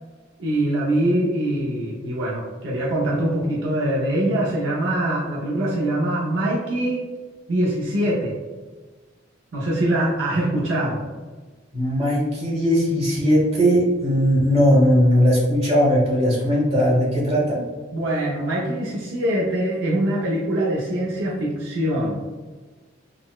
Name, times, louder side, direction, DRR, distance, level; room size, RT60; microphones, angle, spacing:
voice 1, 0.4-7.0 7.5-8.3 9.5-11.0 17.9-22.2, right 1 dB, 70° right, -4 dB, 0.5 m, -23 dB
voice 2, 11.7-17.6, equal, 30° right, -6 dB, 1.0 m, -18 dB
3.8 x 2.0 x 2.2 m, 1.3 s
head